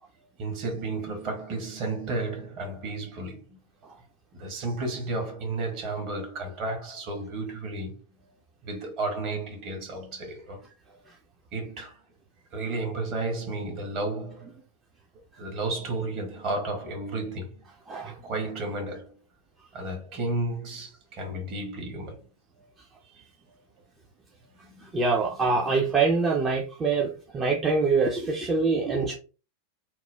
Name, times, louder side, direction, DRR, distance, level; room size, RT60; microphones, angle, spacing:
voice 1, 0.4-3.6 4.3-8.0 8.6-10.6 11.5-12.0 12.5-14.6 15.4-17.6 18.2-19.1 19.7-22.2 23.0-23.3 24.6-24.9, right 2 dB, 40° right, 1.2 m, -32 dB
voice 2, 17.9-18.2 24.8-29.2, right 4 dB, 20° right, 0.5 m, -25 dB
3.0 x 2.0 x 3.3 m
figure-of-eight pair, 90°, 0 cm